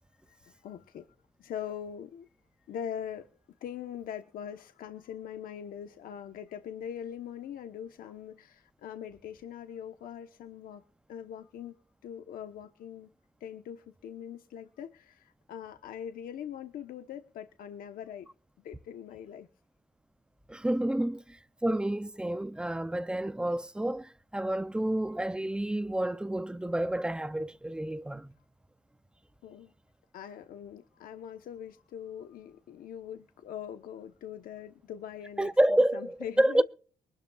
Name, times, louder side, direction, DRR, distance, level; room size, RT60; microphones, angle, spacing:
voice 1, 0.1-2.3 2.7-3.3 3.6-10.8 11.1-13.1 13.4-18.3 18.6-19.5 29.4-29.7 30.1-36.6, left 9 dB, 80° left, 1.0 m, -42 dB
voice 2, 20.5-21.4 21.6-28.3 35.4-36.6, right 1 dB, 5° right, 0.5 m, -29 dB
23.0 x 12.0 x 2.4 m
cardioid pair, 160°, 15 cm